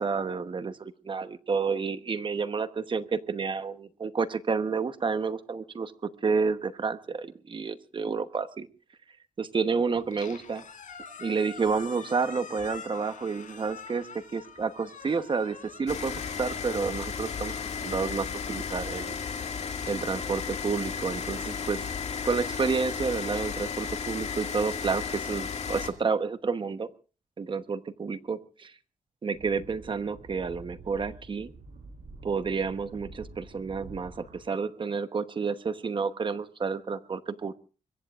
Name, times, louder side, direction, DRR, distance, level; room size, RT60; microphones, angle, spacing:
voice 1, 0.0-8.7 9.4-10.6 11.2-19.2 19.9-21.9 22.2-26.9 27.4-28.7 29.2-31.5 32.2-37.5, right 5 dB, 40° right, 11 dB, 1.0 m, -30 dB
Squeak, 10.0-18.2, left 6 dB, 75° left, 4.3 m, -46 dB
sound 1, 15.9-25.9, left 6 dB, 55° left, 2.1 m, -34 dB
sound 2, 29.3-34.4, right 3 dB, 65° right, 5.9 m, -47 dB
24.5 x 22.5 x 2.4 m, 0.36 s
wide cardioid pair, 150°, 13 cm